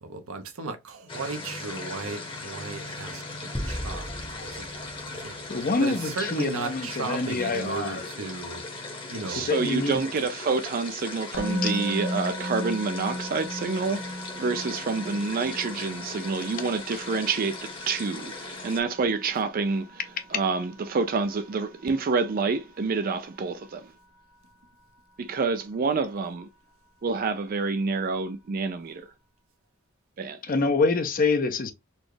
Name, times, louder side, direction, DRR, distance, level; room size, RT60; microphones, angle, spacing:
voice 1, 0.0-4.1 4.4-4.7 5.1-5.4 5.8-8.6 9.1-9.5, right 3 dB, 80° right, 0.9 m, -35 dB
sound 1, 1.1-18.8, left 3 dB, 25° left, 1.0 m, -39 dB
sound 2, 3.5-6.2, equal, 5° left, 0.6 m, -37 dB
voice 2, 5.5-8.1 9.3-10.0 11.4-11.8 16.9-17.0 30.4-31.7, left 3 dB, 40° left, 0.6 m, -26 dB
voice 3, 9.2-20.0 20.3-23.9 25.2-26.5 27.0-29.1 30.2-30.4, right 4 dB, 45° right, 0.4 m, -28 dB
Musical instrument, 11.3-22.4, equal, 85° left, 0.9 m, -37 dB
4.1 x 2.3 x 3.2 m
head